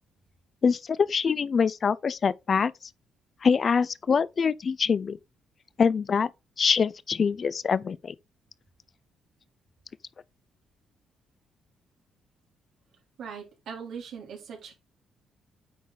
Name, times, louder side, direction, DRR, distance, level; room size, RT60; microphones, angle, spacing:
voice 1, 0.6-2.7 3.4-5.2 5.8-6.3 6.6-8.1, left 6 dB, 45° left, 0.5 m, -24 dB
voice 2, 13.2-14.8, right 6 dB, 70° right, 3.3 m, -40 dB
9.3 x 4.0 x 4.0 m
cardioid pair, 90°, 0 cm